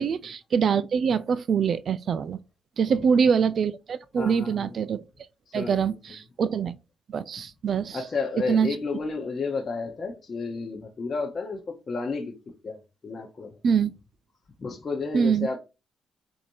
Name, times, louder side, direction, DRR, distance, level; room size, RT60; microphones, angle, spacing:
voice 1, 0.0-2.4 2.8-5.0 5.5-6.7 7.1-8.0 8.5-8.8 13.6-13.9 15.1-15.5, right 6 dB, 55° right, 0.3 m, -24 dB
voice 2, 4.2-4.7 5.5-5.9 7.9-12.3 12.6-13.5 14.6-15.6, left 4 dB, 40° left, 0.9 m, -32 dB
4.2 x 2.7 x 4.6 m
cardioid pair, 90°, 0 cm